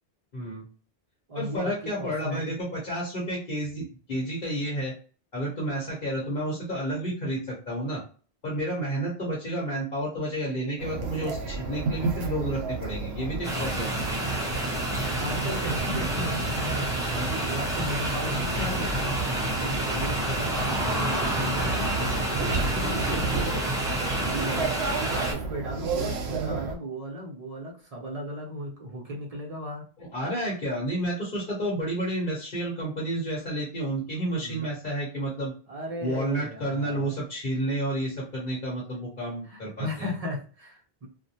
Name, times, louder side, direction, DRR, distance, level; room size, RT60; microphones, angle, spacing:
voice 1, 0.3-0.6 1.3-4.9 5.3-8.0 8.4-14.0 30.0-35.5 36.0-40.1, right 1 dB, 55° left, -4 dB, 1.0 m, -30 dB
voice 2, 1.3-2.6 15.2-23.7 24.2-24.7 25.1-29.9 34.4-34.7 35.7-37.1 39.4-41.1, equal, 40° right, 0 dB, 0.7 m, -36 dB
sound 1, 10.8-26.7, right 4 dB, 90° right, 0.9 m, -32 dB
sound 2, 13.4-25.3, right 1 dB, 5° right, 0.7 m, -29 dB
2.5 x 2.2 x 2.7 m, 0.39 s
omnidirectional pair, 1.1 m